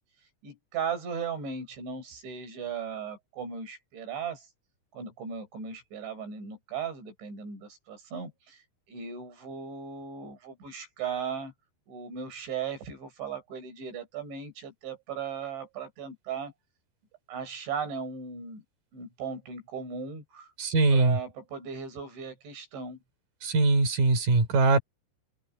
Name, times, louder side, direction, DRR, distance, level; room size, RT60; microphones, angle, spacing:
voice 1, 0.4-4.5 4.9-8.6 8.9-11.5 11.9-16.5 17.3-18.6 18.9-20.5 20.9-23.0, right 6 dB, 85° right, 9.1 m, -37 dB
voice 2, 20.6-21.2 23.4-24.8, right 3 dB, 50° right, 6.4 m, -22 dB
open air
omnidirectional pair, 5.1 m